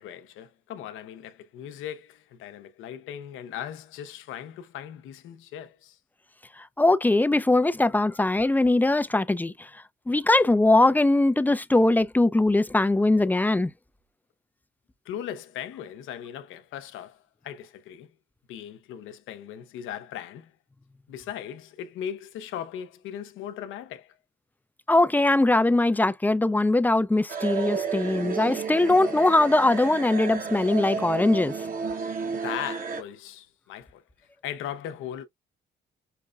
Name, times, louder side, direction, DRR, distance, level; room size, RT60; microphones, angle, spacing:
voice 1, 0.0-6.0 15.1-18.1 18.5-20.5 21.1-24.1 32.4-34.0 34.4-35.3, left 10 dB, 90° left, 0.7 m, -38 dB
voice 2, 6.8-9.7 10.1-13.7 24.9-31.5, left 2 dB, 10° left, 0.3 m, -21 dB
sound 1, 27.3-33.0, right 5 dB, 45° right, 0.9 m, -32 dB
5.8 x 2.1 x 2.3 m
cardioid pair, 90°, 20 cm